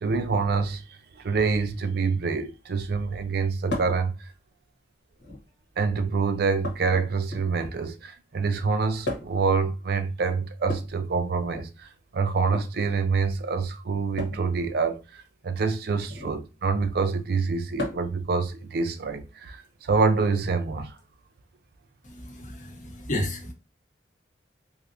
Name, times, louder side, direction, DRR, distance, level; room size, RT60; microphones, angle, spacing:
voice 1, 0.0-4.3 5.8-21.0, right 4 dB, 60° right, 0.4 m, -26 dB
sound 1, 3.7-4.0 5.1-5.6 6.6-7.7 9.0-9.5 10.6-11.7 12.4-12.7 14.2-14.5 16.0-16.4 17.8-18.2 19.6-19.7 21.0-21.1, left 1 dB, 75° left, 1.1 m, -35 dB
voice 2, 22.0-23.5, left 1 dB, 45° left, 0.8 m, -32 dB
3.4 x 2.7 x 2.5 m
head